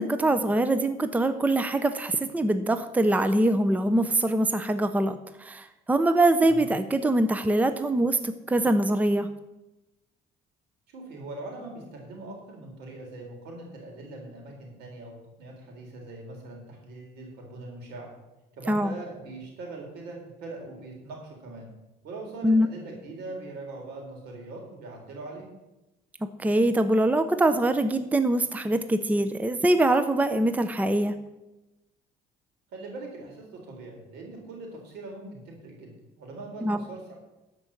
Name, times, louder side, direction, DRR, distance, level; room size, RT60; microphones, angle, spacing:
voice 1, 0.0-9.3 18.7-18.9 22.4-22.7 26.4-31.1 36.6-36.8, right 1 dB, 10° right, 10 dB, 0.6 m, -23 dB
voice 2, 10.9-18.1 18.5-21.7 22.0-25.5 32.7-37.1, right 2 dB, 85° right, 1 dB, 3.8 m, -41 dB
12.0 x 5.3 x 7.3 m, 0.99 s
cardioid pair, 110°, 17 cm